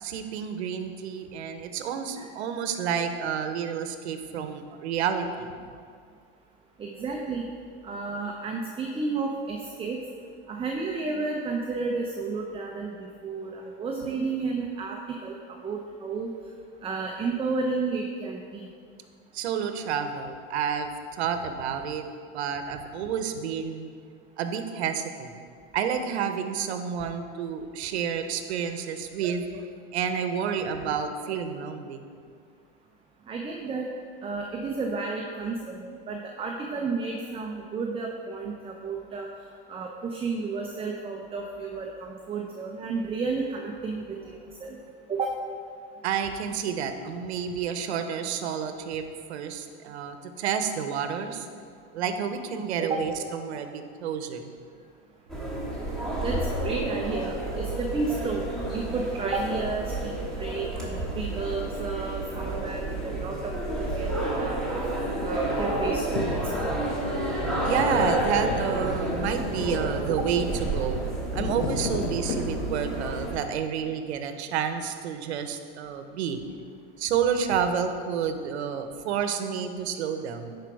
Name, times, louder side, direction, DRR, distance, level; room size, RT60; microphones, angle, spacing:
voice 1, 0.0-5.5 19.3-20.9 21.2-22.0 22.3-23.9 24.4-25.4 25.7-32.0 46.0-49.0 49.3-51.5 51.9-54.5 67.6-70.5 70.7-71.0 71.3-76.4 77.0-80.6, right 7 dB, 85° right, 8 dB, 0.9 m, -30 dB
voice 2, 6.8-7.4 7.8-10.0 10.5-16.3 16.8-18.7 33.3-33.9 34.2-39.3 39.7-44.8 45.1-45.4 52.8-53.0 56.2-64.6 65.2-66.2 66.6-66.8, right 4 dB, 15° right, 1 dB, 0.7 m, -32 dB
sound 1, 55.3-73.4, right 1 dB, ahead, 1.9 m, -30 dB
sound 2, 66.2-72.9, left 4 dB, 70° left, 1.2 m, -35 dB
11.0 x 5.0 x 4.7 m, 2.1 s
supercardioid pair, 120°, 32 cm